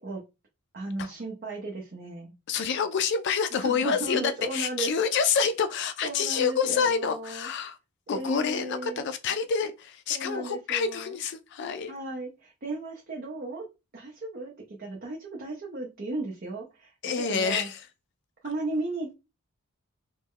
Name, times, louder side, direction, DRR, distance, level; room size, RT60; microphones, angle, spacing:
voice 1, 0.7-2.3 3.6-4.9 6.0-7.5 8.1-9.1 10.1-11.1 11.9-13.7 13.9-17.7 18.4-19.1, right 2 dB, 45° right, 0.6 m, -35 dB
voice 2, 2.5-7.8 8.1-11.9 17.0-17.8, left 6 dB, 55° left, 0.3 m, -27 dB
3.1 x 2.1 x 3.6 m
head